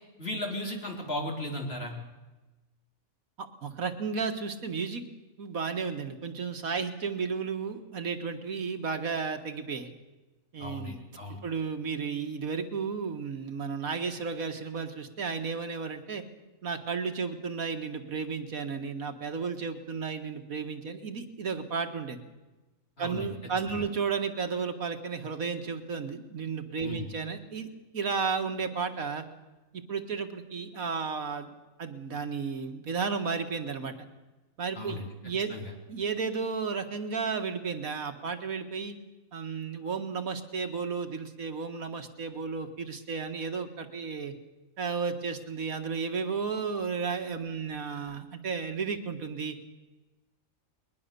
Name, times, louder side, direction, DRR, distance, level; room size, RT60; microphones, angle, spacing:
voice 1, 0.2-1.9 10.6-11.4 23.0-23.3 23.7-23.9 26.8-27.1 34.7-35.1 35.5-35.7, left 1 dB, 45° left, 0 dB, 4.3 m, -36 dB
voice 2, 3.4-5.0 5.4-9.9 10.5-11.0 11.4-16.2 16.6-22.2 23.0-29.2 29.7-31.5 31.8-33.9 34.6-35.5 35.9-38.9 39.3-44.3 44.8-49.6, right 5 dB, 85° right, 6 dB, 2.1 m, -33 dB
21.5 x 20.5 x 6.9 m, 1.1 s
omnidirectional pair, 1.4 m